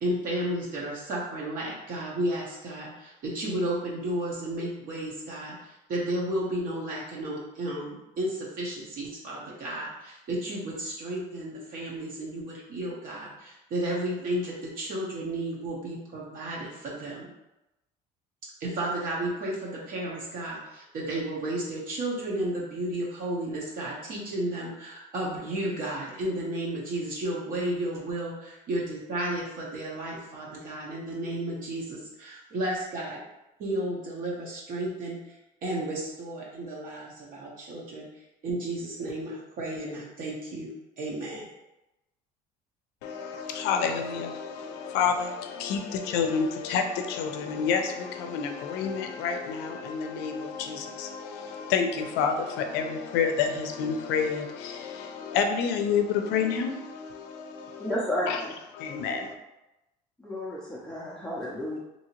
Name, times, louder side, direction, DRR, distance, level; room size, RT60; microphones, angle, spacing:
voice 1, 0.0-17.3 18.6-33.2 33.6-35.3 35.6-38.1 38.4-40.7 41.0-41.4, right 1 dB, 55° right, 0.8 m, -33 dB
voice 2, 43.0-57.9 58.3-58.4 58.7-59.4, left 6 dB, 75° left, 0.5 m, -29 dB
voice 3, 57.8-58.5 60.2-61.8, left 1 dB, 5° left, 0.5 m, -32 dB
2.8 x 2.7 x 2.8 m
cardioid pair, 115°, 18 cm